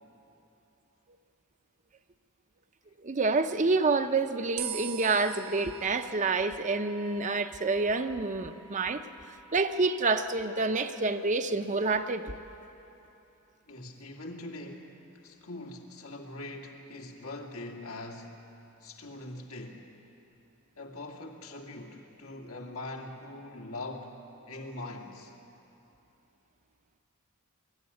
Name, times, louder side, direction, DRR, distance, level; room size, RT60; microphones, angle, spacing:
voice 1, 3.0-9.0 9.5-12.4, right 3 dB, 35° right, 8 dB, 0.7 m, -28 dB
sound 1, 4.6-11.0, right 8 dB, 85° right, 1.1 m, -45 dB
voice 2, 13.7-18.5 18.8-19.9 20.8-24.2 24.4-25.3, left 2 dB, 85° left, 1 dB, 2.4 m, -42 dB
23.5 x 14.0 x 9.9 m, 2.9 s
head